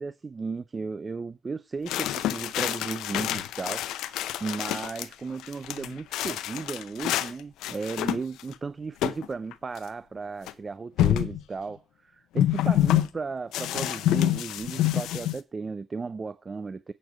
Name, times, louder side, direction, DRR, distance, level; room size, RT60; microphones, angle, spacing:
voice 1, 0.0-16.9, right 4 dB, 30° right, 0.5 m, -35 dB
sound 1, 1.9-5.1 5.4-7.3 7.6-8.5 9.0-9.3 9.5-9.6 10.5-10.6 11.0-11.4 12.4-13.1 13.5-15.4, left 13 dB, 90° left, 0.7 m, -27 dB
9.6 x 6.7 x 5.0 m
cardioid pair, 90°, 0 cm